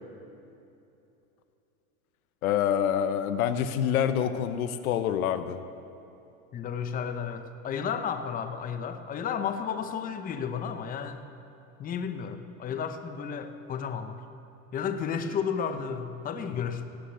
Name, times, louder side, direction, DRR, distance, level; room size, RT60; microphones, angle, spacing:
voice 1, 2.4-5.6, left 9 dB, 90° left, 11 dB, 0.9 m, -26 dB
voice 2, 6.5-11.2 11.8-14.2 14.7-16.8, left 7 dB, 20° left, 8 dB, 0.7 m, -32 dB
17.5 x 6.5 x 8.0 m, 2.8 s
supercardioid pair, 130°, 41 cm